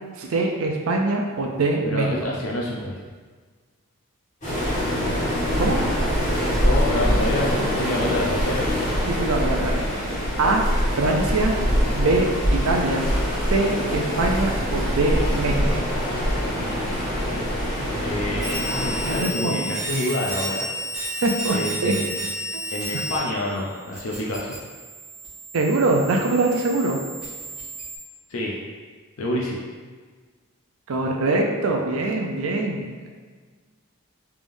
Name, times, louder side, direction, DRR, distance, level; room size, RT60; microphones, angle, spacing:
voice 1, 0.2-2.2 5.6-5.8 9.1-9.8 10.4-10.6 11.0-11.5 11.9-13.0 13.5-15.8 19.0-19.6 21.2-21.9 22.5-22.6 22.9-23.0 25.5-27.0 30.9-33.1, right 2 dB, 70° right, 1 dB, 0.4 m, -23 dB
voice 2, 1.8-3.0 6.6-8.8 18.0-20.6 21.5-22.2 22.7-24.6 28.3-28.6 29.2-29.6, left 1 dB, 70° left, -3 dB, 0.5 m, -27 dB
Waves surf, 4.4-19.2, equal, 35° left, 1.2 m, -24 dB
sound 1, 18.4-23.2 23.4-28.0, equal, 5° right, 0.9 m, -32 dB
3.4 x 3.4 x 2.6 m, 1.5 s
head